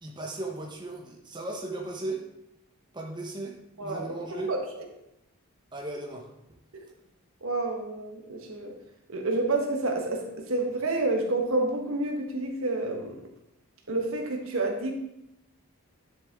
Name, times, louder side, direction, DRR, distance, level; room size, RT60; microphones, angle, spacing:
voice 1, 0.0-2.2 2.9-4.5 5.7-6.3, right 2 dB, 20° right, 0 dB, 1.1 m, -36 dB
voice 2, 3.8-4.6 6.7-6.8 7.4-8.8 9.1-13.2 13.9-14.9, right 2 dB, 65° right, 2 dB, 1.5 m, -29 dB
10.0 x 7.0 x 3.7 m, 0.83 s
head